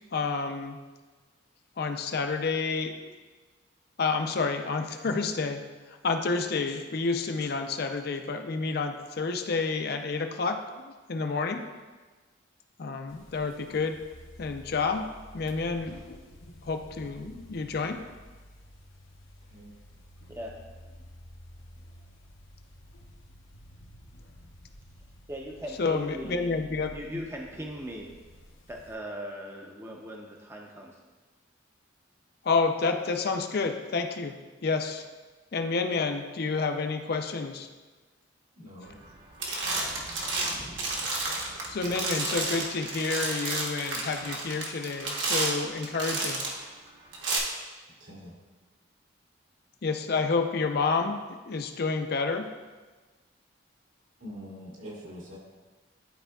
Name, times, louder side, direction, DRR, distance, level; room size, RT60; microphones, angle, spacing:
voice 1, 0.1-0.8 1.8-3.1 4.0-5.6 5.9-11.7 12.8-14.0 14.4-15.1 15.3-16.0 16.6-18.0 25.8-26.9 32.4-34.3 34.6-35.0 35.5-37.7 41.7-46.5 49.8-52.5, left 4 dB, 50° left, 6 dB, 0.5 m, -29 dB
sound 1, 13.1-28.9, equal, 75° left, 0.8 m, -51 dB
voice 2, 25.3-28.2 28.7-31.0, equal, 15° right, 0 dB, 0.5 m, -39 dB
voice 3, 38.5-39.0 48.0-48.4 54.2-55.4, equal, 85° right, -5 dB, 2.0 m, -44 dB
sound 2, 38.9-39.1 39.4-46.6 47.1-47.4, right 2 dB, 65° right, 1.2 m, -31 dB
11.5 x 4.5 x 2.3 m, 1.3 s
head